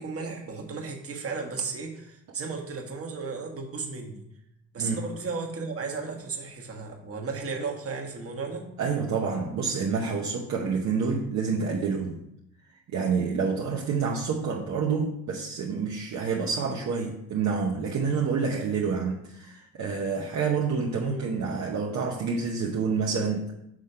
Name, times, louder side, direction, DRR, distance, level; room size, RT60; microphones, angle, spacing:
voice 1, 0.0-4.2 4.7-8.7 21.0-21.3, right 4 dB, 50° right, 1 dB, 1.5 m, -34 dB
voice 2, 8.8-12.2 12.9-23.5, right 5 dB, 65° right, -2 dB, 0.9 m, -28 dB
6.2 x 3.6 x 5.5 m, 0.80 s
cardioid pair, 90°, 30 cm